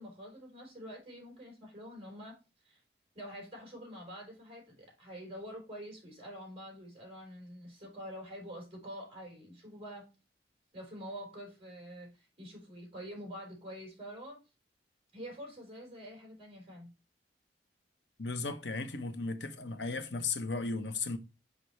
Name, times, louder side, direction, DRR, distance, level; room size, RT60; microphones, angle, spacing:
voice 1, 0.0-2.8 3.1-10.1 10.7-14.4 15.1-16.9, equal, 30° right, 4.2 m, -46 dB
voice 2, 18.2-21.2, left 3 dB, 80° left, 1.0 m, -35 dB
5.9 x 5.3 x 3.2 m
head